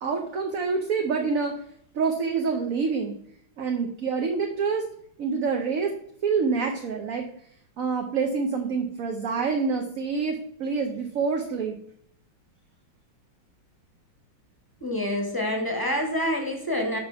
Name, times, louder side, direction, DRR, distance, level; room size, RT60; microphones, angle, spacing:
voice 1, 0.0-1.6 1.9-3.2 3.6-4.9 5.2-5.9 6.2-7.3 7.8-11.8, right 5 dB, 60° right, 3 dB, 1.0 m, -27 dB
voice 2, 14.8-17.0, left 1 dB, 15° left, 3 dB, 0.9 m, -27 dB
7.0 x 5.2 x 5.5 m, 0.67 s
omnidirectional pair, 2.1 m